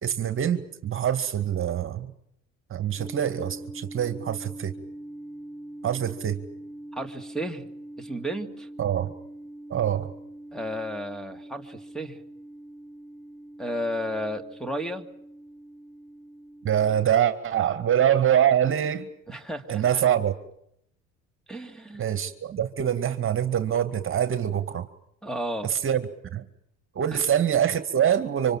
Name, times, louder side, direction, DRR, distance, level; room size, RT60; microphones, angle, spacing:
voice 1, 0.0-2.1 2.7-4.7 5.8-6.4 8.8-9.1 9.7-10.1 16.6-19.1 19.7-20.3 22.0-24.9 25.7-26.0 26.3-26.5 27.0-28.6, right 9 dB, 40° right, 10 dB, 2.2 m, -24 dB
sound 1, 3.0-17.1, right 1 dB, 45° left, 7.5 m, -43 dB
voice 2, 6.9-7.7 8.0-8.7 10.5-12.2 13.6-15.1 19.3-20.0 21.5-22.1 25.2-25.7 27.1-27.2, equal, ahead, 8 dB, 2.8 m, -33 dB
26.0 x 25.5 x 7.5 m, 0.72 s
cardioid pair, 105°, 31 cm